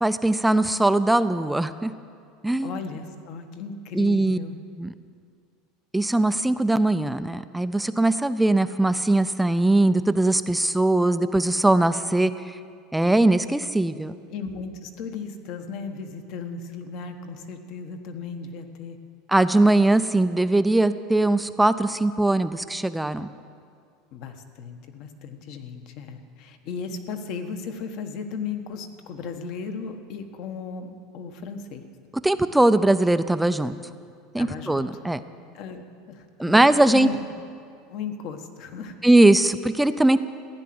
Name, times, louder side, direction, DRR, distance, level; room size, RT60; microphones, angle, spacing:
voice 1, 0.0-1.9 2.4-2.8 3.9-4.4 4.8-4.9 5.9-12.6 12.9-14.2 19.3-23.3 32.2-33.8 34.3-35.2 36.4-37.1 39.0-40.2, right 2 dB, 5° right, 12 dB, 0.4 m, -20 dB
voice 2, 2.6-4.6 14.3-19.0 24.1-31.8 34.4-34.8 35.5-37.3 37.9-39.0, left 5 dB, 55° left, 6 dB, 1.4 m, -36 dB
15.5 x 10.5 x 7.8 m, 2.2 s
supercardioid pair, 140°, 0 cm